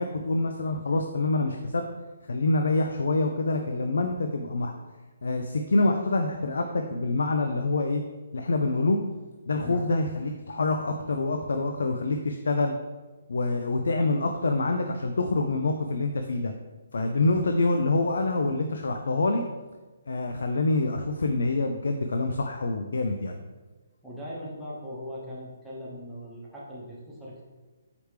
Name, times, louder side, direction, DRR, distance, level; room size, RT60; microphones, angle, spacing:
voice 1, 0.0-1.8 2.3-4.7 5.2-8.0 8.3-9.0 9.5-12.7 13.3-16.5 16.9-19.4 20.1-23.4, left 2 dB, 80° left, 5 dB, 0.3 m, -26 dB
voice 2, 24.0-27.4, equal, ahead, -9 dB, 0.7 m, -39 dB
4.8 x 3.3 x 3.2 m, 1.3 s
hypercardioid pair, 170°, 0 cm